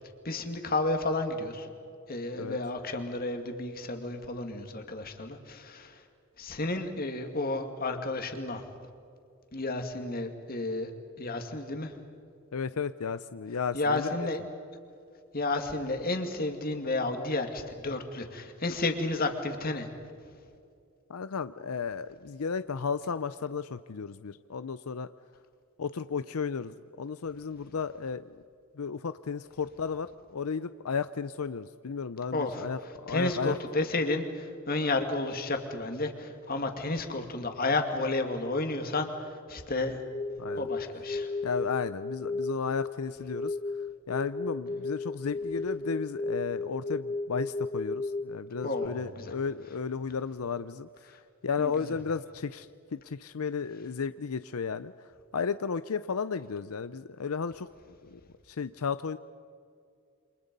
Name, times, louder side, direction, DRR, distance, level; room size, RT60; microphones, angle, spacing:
voice 1, 0.2-1.7 2.1-6.0 6.4-8.6 9.5-10.9 11.2-12.0 13.7-14.4 15.3-19.9 32.3-32.7 33.1-40.0 40.6-41.3 48.6-49.3 51.6-51.7, left 2 dB, 40° left, 5 dB, 2.4 m, -31 dB
voice 2, 12.5-14.3 21.1-25.1 25.8-28.2 28.8-33.6 40.4-40.7 41.4-43.6 44.1-52.7 52.9-58.2 58.5-59.2, left 5 dB, 85° left, 13 dB, 0.6 m, -34 dB
sound 1, 40.0-48.9, left 3 dB, 20° left, 0.5 m, -34 dB
28.5 x 26.0 x 5.4 m, 2.5 s
head